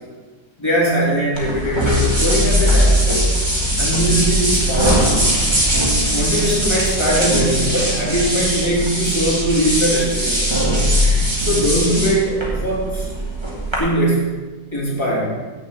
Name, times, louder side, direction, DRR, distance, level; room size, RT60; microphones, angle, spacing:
voice 1, 0.6-3.3 3.8-5.2 6.1-10.5 11.4-13.1 13.8-14.3 14.7-15.4, equal, 15° left, -5 dB, 3.1 m, -20 dB
sound 1, 1.3-13.8, equal, 15° right, 2.5 m, -19 dB
8.0 x 7.4 x 8.3 m, 1.3 s
omnidirectional pair, 1.8 m